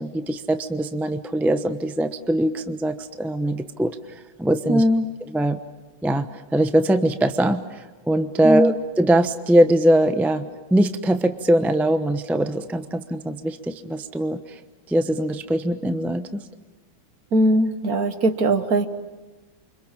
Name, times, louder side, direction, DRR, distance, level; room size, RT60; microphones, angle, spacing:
voice 1, 0.0-4.8 5.3-5.6 6.0-14.6 14.9-16.3, right 1 dB, ahead, 9 dB, 0.4 m, -22 dB
voice 2, 4.7-5.1 8.4-8.7 17.3-18.9, right 1 dB, 50° right, 9 dB, 1.7 m, -19 dB
29.0 x 25.5 x 7.4 m, 1.2 s
omnidirectional pair, 2.1 m